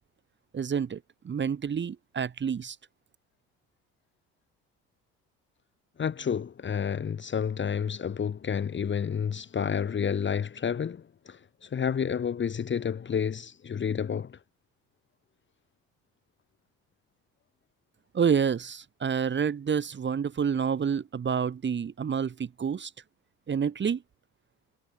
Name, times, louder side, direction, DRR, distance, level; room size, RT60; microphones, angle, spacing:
voice 1, 0.5-2.7 18.1-22.9 23.5-24.0, right 7 dB, 35° right, 1.7 m, -28 dB
voice 2, 6.0-14.4, left 7 dB, 35° left, 1.6 m, -30 dB
supercardioid pair, 70°, 31 cm